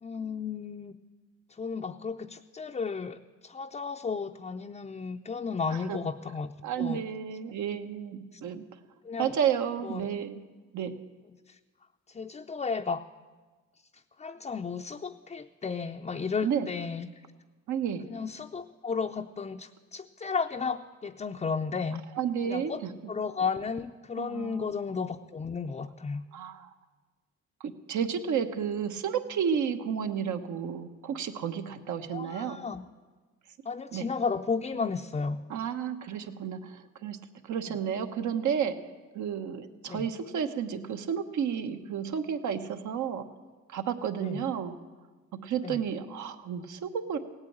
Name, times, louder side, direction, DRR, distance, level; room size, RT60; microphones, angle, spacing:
voice 1, 0.0-1.0 1.5-6.5 6.8-7.0 8.3-8.4 9.0-9.4 9.8-10.1 11.5-11.6 12.1-13.0 13.9-17.1 18.1-22.0 22.4-26.2 32.1-32.9 33.6-35.4 37.7-37.8 39.9-40.0 44.2-44.4 45.6-45.8, left 5 dB, 25° left, 4 dB, 0.5 m, -34 dB
voice 2, 6.6-8.6 9.2-10.4 10.7-10.9 16.4-16.7 17.7-18.0 22.2-22.9 24.2-24.7 26.3-26.7 27.6-32.6 33.9-34.0 35.5-37.2 37.4-38.7 39.1-43.2 43.7-44.8 45.4-47.2, right 8 dB, 75° right, 7 dB, 1.3 m, -31 dB
17.0 x 8.9 x 8.7 m, 1.3 s
cardioid pair, 90°, 30 cm